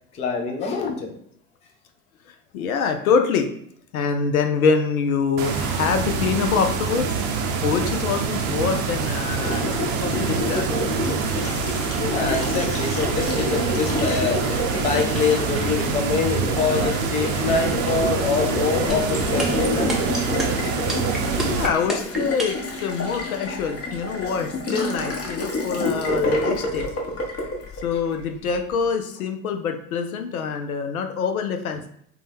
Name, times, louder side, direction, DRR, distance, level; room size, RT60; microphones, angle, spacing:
voice 1, 0.1-1.2 11.2-11.6 12.0-14.5 14.8-19.9 27.9-28.0, left 5 dB, 15° left, 3 dB, 0.4 m, -25 dB
voice 2, 2.5-3.5 3.9-10.7 21.4-26.9 27.8-31.9, left 6 dB, 70° left, 7 dB, 0.6 m, -25 dB
sound 1, 5.4-21.7, right 5 dB, 45° right, 0.6 m, -26 dB
Water tap faucet, 9.4-28.5, left 1 dB, 35° left, 1.0 m, -28 dB
sound 2, 18.9-22.7, right 1 dB, ahead, 0.8 m, -27 dB
3.9 x 2.2 x 3.4 m, 0.66 s
figure-of-eight pair, 70°, 44 cm